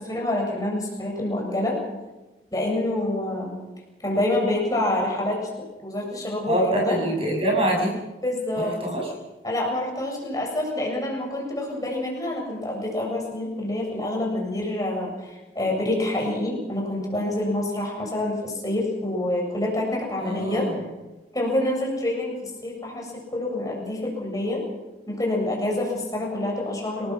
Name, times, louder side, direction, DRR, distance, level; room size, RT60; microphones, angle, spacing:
voice 1, 0.0-1.8 2.5-3.6 4.0-7.0 8.2-8.8 9.4-20.7 21.3-24.6 25.1-27.1, left 1 dB, 20° left, -1 dB, 7.4 m, -27 dB
voice 2, 6.5-7.9 8.6-9.1 20.2-20.8, right 1 dB, 35° right, 0 dB, 7.3 m, -25 dB
29.5 x 19.5 x 6.1 m, 1.1 s
head